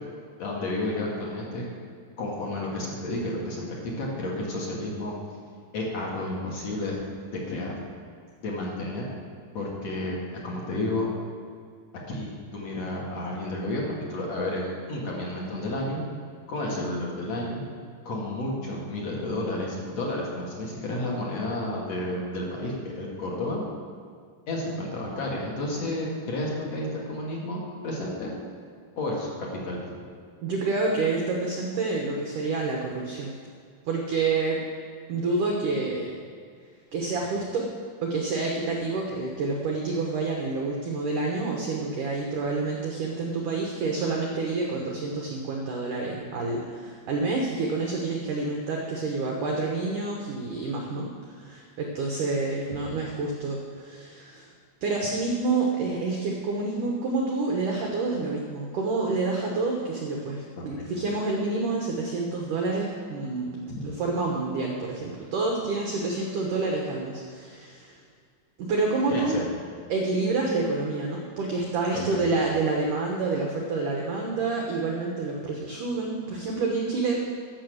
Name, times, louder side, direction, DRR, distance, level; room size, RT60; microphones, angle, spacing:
voice 1, 0.4-1.6 2.2-5.1 5.7-6.9 7.3-7.7 8.4-9.0 9.5-10.2 10.4-11.1 12.1-16.0 16.5-17.6 18.0-23.6 24.5-28.3 29.0-29.9 60.6-60.8 63.7-63.8 69.1-69.4 71.9-72.2, left 1 dB, 45° left, -3 dB, 2.2 m, -31 dB
voice 2, 30.4-33.3 33.9-34.6 35.1-36.1 36.9-37.7 38.0-54.5 54.8-68.0 68.6-69.4 69.9-77.2, right 3 dB, 80° right, 0 dB, 1.8 m, -28 dB
14.5 x 6.9 x 6.5 m, 2.1 s
omnidirectional pair, 5.5 m